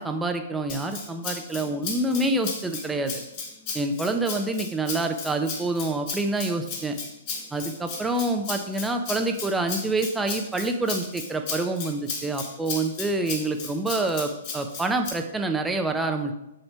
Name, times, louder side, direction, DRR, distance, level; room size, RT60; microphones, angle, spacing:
voice 1, 0.0-3.2 3.7-6.9 7.5-16.3, right 2 dB, 10° right, 5 dB, 0.8 m, -27 dB
Rattle (instrument), 0.7-15.1, left 4 dB, 40° left, 2.0 m, -35 dB
7.1 x 6.4 x 4.6 m, 0.87 s
figure-of-eight pair, 115°, 0 cm